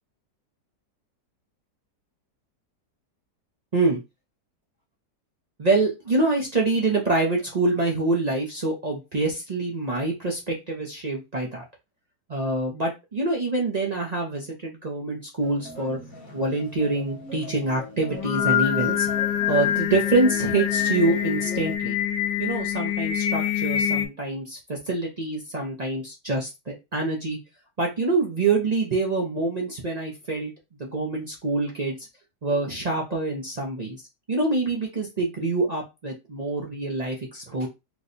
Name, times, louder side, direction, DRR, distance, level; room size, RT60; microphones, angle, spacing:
voice 1, 5.6-11.6 12.3-16.0 16.3-19.1 19.5-22.0 22.4-27.4 27.8-30.5 30.8-32.0 32.4-34.0 34.3-37.7, right 3 dB, 55° right, -1 dB, 0.4 m, -26 dB
sound 1, 15.4-21.8, left 2 dB, 35° left, 0.9 m, -40 dB
Singing, 18.1-24.1, left 10 dB, 85° left, 1.3 m, -25 dB
4.5 x 2.2 x 2.6 m, 0.24 s
omnidirectional pair, 1.8 m